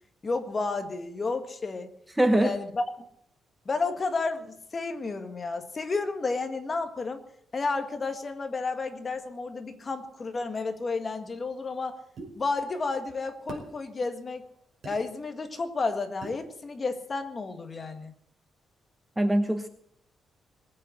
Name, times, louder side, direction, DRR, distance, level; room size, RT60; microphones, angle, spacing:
voice 1, 0.2-1.9 2.4-2.8 3.7-7.2 7.5-12.0 12.4-14.4 14.8-18.1, left 3 dB, 25° left, 7 dB, 1.7 m, -31 dB
voice 2, 2.2-2.5 19.2-19.7, right 1 dB, 5° right, 8 dB, 0.9 m, -22 dB
sound 1, 12.2-12.3 13.5-13.7 14.8-15.0 16.2-16.4, right 3 dB, 50° right, 4.9 m, -39 dB
20.5 x 8.6 x 7.8 m, 0.71 s
cardioid pair, 160°, 0 cm